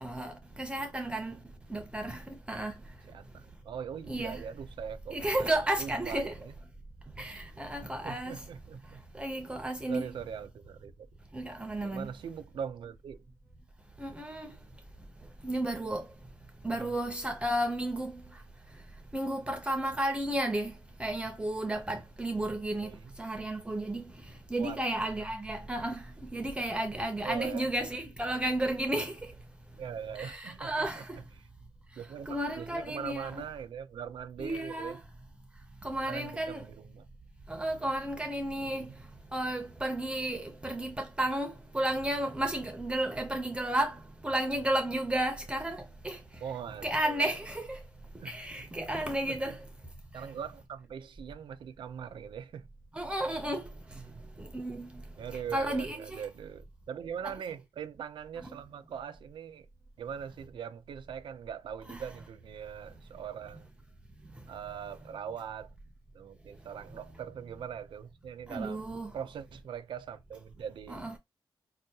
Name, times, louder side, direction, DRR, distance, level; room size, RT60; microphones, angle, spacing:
voice 1, 0.0-1.4 1.7-2.8 4.1-4.4 5.1-6.3 7.2-8.4 9.1-10.1 11.3-12.1 14.0-14.6 15.4-16.1 16.6-18.4 19.1-29.3 30.2-31.2 32.3-33.3 34.4-35.0 35.8-36.7 37.5-39.0 39.3-46.2 46.8-47.8 48.2-49.6 50.1-50.2 52.9-53.7 54.4-55.0 55.5-56.2 57.2-57.3 58.5-58.6 61.9-62.0 68.5-69.1 70.9-71.2, right 1 dB, 10° right, 0.5 m, -33 dB
voice 2, 3.1-6.5 7.2-7.3 8.0-9.0 9.9-11.1 11.8-13.2 16.7-16.9 22.8-23.1 24.6-24.8 27.2-27.7 29.8-31.0 31.4-31.5 32.0-35.0 36.0-37.1 38.6-39.0 46.4-47.4 48.2-48.7 49.3-49.6 50.1-52.7 53.9-54.3 55.2-59.7 60.0-63.7 64.5-65.7 66.1-68.8 69.1-71.0, right 8 dB, 75° right, 0.5 m, -41 dB
5.3 x 2.1 x 2.7 m
wide cardioid pair, 150°, 8 cm